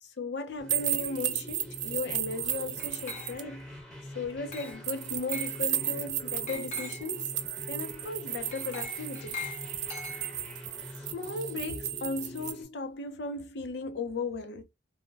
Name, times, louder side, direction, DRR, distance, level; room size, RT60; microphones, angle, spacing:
voice 1, 0.0-3.6 4.1-7.3 7.7-9.4 11.1-14.6, left 3 dB, 65° left, 0.6 m, -36 dB
sound 1, 0.6-12.6, equal, 5° left, 1.0 m, -45 dB
sound 2, 0.7-3.4 4.8-12.5, right 11 dB, 75° right, 0.4 m, -34 dB
Glass, 2.8-3.6 4.5-4.9 5.3-5.6 6.5-7.1 8.5-10.5, left 3 dB, 40° left, 0.9 m, -42 dB
2.2 x 2.1 x 3.2 m
head